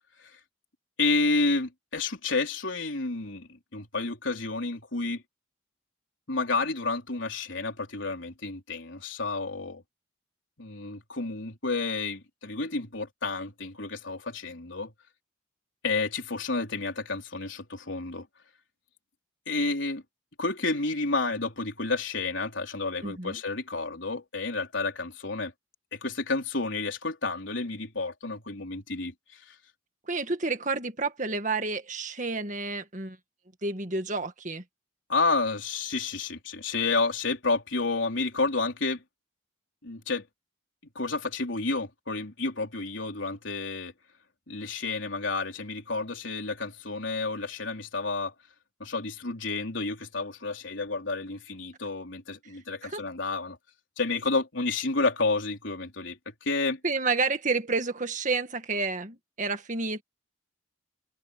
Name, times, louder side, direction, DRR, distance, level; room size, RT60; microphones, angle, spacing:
voice 1, 1.0-5.2 6.3-9.8 10.6-14.9 15.8-18.3 19.5-20.0 20.4-25.5 25.9-29.1 29.5-29.6 35.1-39.0 39.8-40.2 41.0-43.9 44.5-48.3 48.8-53.6 54.0-56.8, left 3 dB, 70° left, 3.9 m, -30 dB
voice 2, 23.0-23.4 30.1-33.2 33.6-34.6 52.8-53.0 56.8-60.0, right 3 dB, 40° right, 1.9 m, -30 dB
head